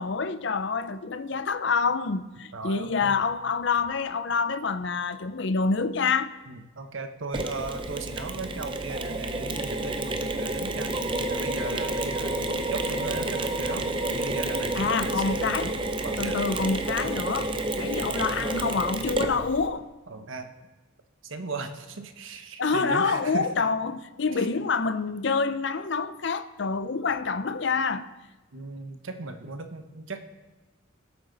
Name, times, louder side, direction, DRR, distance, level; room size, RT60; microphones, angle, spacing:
voice 1, 0.0-6.3 14.7-15.7 16.2-19.9 22.6-28.1, left 4 dB, 60° left, 0.5 m, -27 dB
voice 2, 2.5-3.2 6.5-10.9 11.3-13.9 14.1-15.7 16.0-16.4 20.1-20.5 21.2-23.5 24.4-24.5 28.5-30.2, right 3 dB, 75° right, 1.1 m, -37 dB
Mechanisms, 7.3-19.7, right 2 dB, 25° right, 0.6 m, -30 dB
19.0 x 8.2 x 4.0 m
head